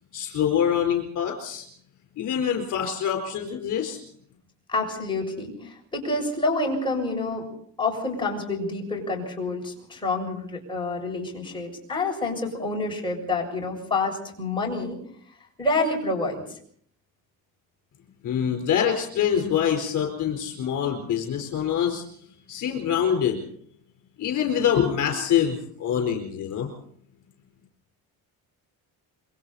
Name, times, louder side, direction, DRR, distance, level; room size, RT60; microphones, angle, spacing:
voice 1, 0.1-1.7 2.2-4.0 18.2-22.0 22.5-23.5 24.2-26.7, left 8 dB, 50° left, 3 dB, 4.5 m, -25 dB
voice 2, 4.7-7.5 7.8-15.0 15.6-16.6, left 2 dB, 15° left, -1 dB, 7.3 m, -28 dB
27.0 x 23.5 x 4.3 m, 0.63 s
cardioid pair, 150°, 38 cm